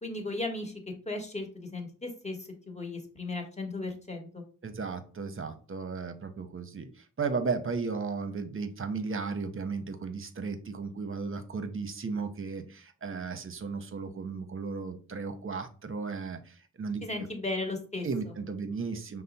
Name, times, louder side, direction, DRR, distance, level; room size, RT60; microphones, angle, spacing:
voice 1, 0.0-0.7 1.0-4.4 17.0-18.1, left 2 dB, 20° left, 3 dB, 1.1 m, -36 dB
voice 2, 4.6-17.0 18.0-19.2, right 4 dB, 45° right, 9 dB, 0.7 m, -35 dB
5.4 x 2.0 x 4.0 m, 0.39 s
wide cardioid pair, 70°, 30 cm